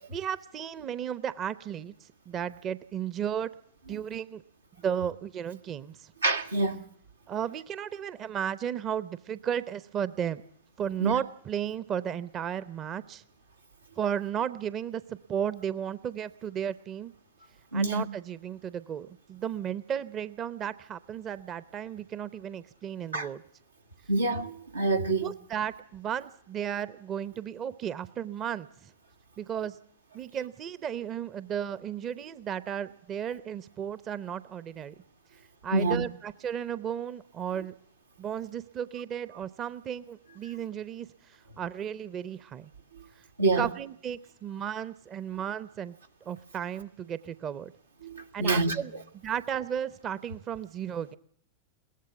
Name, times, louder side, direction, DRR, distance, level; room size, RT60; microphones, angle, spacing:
voice 1, 0.1-3.5 3.9-4.4 4.8-6.1 7.3-10.4 10.8-13.2 14.0-17.1 17.7-23.4 25.2-28.9 29.4-29.8 30.1-34.9 35.6-37.7 38.2-42.7 43.4-46.0 46.2-47.7 48.3-48.9 49.2-51.2, right 9 dB, 30° right, 0.8 m, -34 dB
voice 2, 6.2-6.8 11.0-11.1 17.7-18.1 23.1-23.3 24.1-25.3 35.7-36.1 43.4-43.7 48.0-48.8, right 2 dB, 80° right, 1.4 m, -26 dB
22.0 x 17.5 x 7.0 m
figure-of-eight pair, 90°, 0 cm